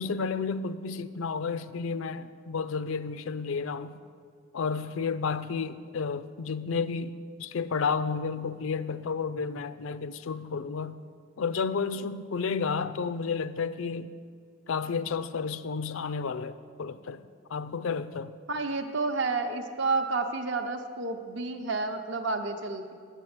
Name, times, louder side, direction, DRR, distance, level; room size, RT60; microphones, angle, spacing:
voice 1, 0.0-4.0 4.5-11.0 11.4-14.1 14.7-17.2 17.5-18.3, left 5 dB, 70° left, 0.4 m, -31 dB
voice 2, 18.5-22.9, right 3 dB, 60° right, 0.7 m, -30 dB
8.9 x 6.6 x 7.8 m
head